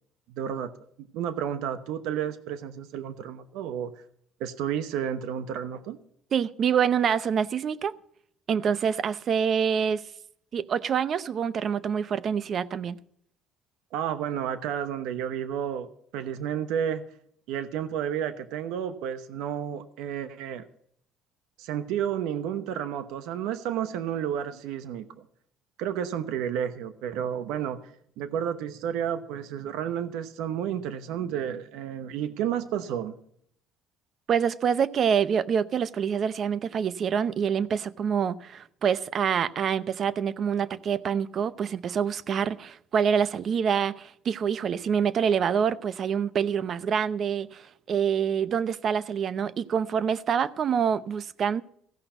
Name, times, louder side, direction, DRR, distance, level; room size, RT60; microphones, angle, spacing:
voice 1, 0.3-0.7 1.0-3.9 4.4-6.0 13.9-17.1 17.5-20.6 21.6-25.3 25.8-27.8 28.2-33.1, right 9 dB, 80° right, 0.9 m, -31 dB
voice 2, 6.3-7.9 8.5-10.0 10.5-13.0 34.3-51.6, right 7 dB, 50° right, 0.7 m, -26 dB
16.0 x 5.8 x 8.9 m
cardioid pair, 105°, 0 cm